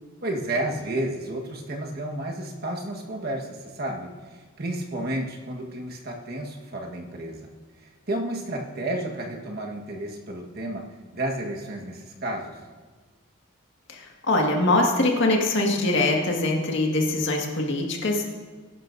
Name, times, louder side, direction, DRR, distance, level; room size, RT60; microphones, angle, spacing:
voice 1, 0.2-7.5 8.1-10.8 11.1-12.5, right 1 dB, 50° right, 1 dB, 1.5 m, -31 dB
voice 2, 13.9-18.3, left 2 dB, 60° left, 0 dB, 1.9 m, -23 dB
21.0 x 11.0 x 2.7 m, 1.4 s
head